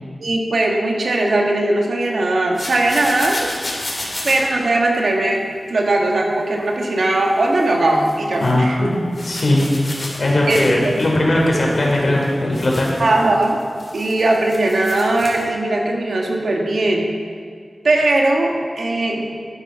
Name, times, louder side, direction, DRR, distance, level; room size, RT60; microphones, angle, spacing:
voice 1, 0.2-3.5 4.2-5.4 5.7-8.9 10.5-11.0 13.0-13.6 13.9-17.0 17.8-19.2, right 2 dB, 80° right, 0 dB, 1.8 m, -19 dB
sound 1, 2.5-4.4 7.5-7.7 8.0-8.5 9.1-11.1 11.4-15.4, left 1 dB, 45° left, 3.1 m, -32 dB
voice 2, 8.4-8.9 9.2-9.6 10.2-12.9, left 1 dB, 60° left, -2 dB, 3.5 m, -18 dB
12.0 x 9.3 x 5.8 m, 2.1 s
wide cardioid pair, 70°, 0 cm